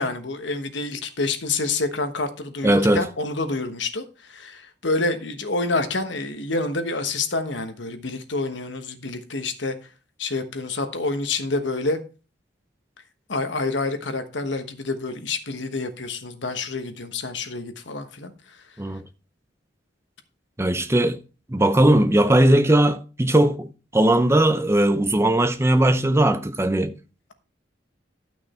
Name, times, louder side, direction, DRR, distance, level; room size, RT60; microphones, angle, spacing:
voice 1, 0.0-9.8 10.2-12.0 13.3-18.3, left 3 dB, 70° left, 1.2 m, -28 dB
voice 2, 2.6-3.1 18.8-19.0 20.6-21.2 21.5-26.9, right 1 dB, 15° right, 0.6 m, -19 dB
12.0 x 6.1 x 4.3 m
head